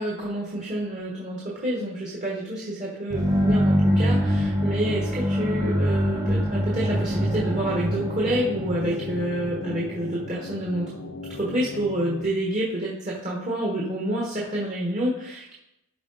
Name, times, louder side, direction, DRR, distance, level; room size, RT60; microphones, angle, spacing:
voice 1, 0.0-10.9 11.3-15.5, right 1 dB, 35° right, -4 dB, 1.3 m, -28 dB
sound 1, 3.1-10.9, equal, 15° right, 0.9 m, -25 dB
sound 2, 7.2-12.2, left 4 dB, 60° left, 0.7 m, -37 dB
12.0 x 4.6 x 4.0 m, 0.85 s
head